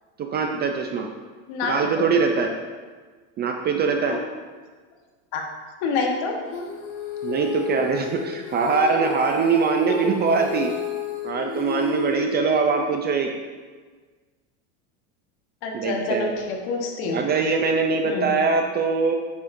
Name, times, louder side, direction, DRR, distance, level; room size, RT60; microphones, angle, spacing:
voice 1, 0.2-1.1 1.6-2.5 3.4-4.2 7.2-10.7 11.2-13.3 15.7-16.3 17.1-19.2, right 5 dB, 25° right, 4 dB, 0.4 m, -22 dB
voice 2, 1.5-2.1 4.1-4.2 5.3-5.4 5.8-6.3 9.8-10.0 15.6-17.2 18.0-18.3, left 3 dB, 60° left, 1 dB, 1.4 m, -27 dB
Female singing, 6.5-13.0, left 5 dB, 90° left, 1.7 m, -32 dB
8.6 x 6.1 x 2.6 m, 1.5 s
supercardioid pair, 125°, 41 cm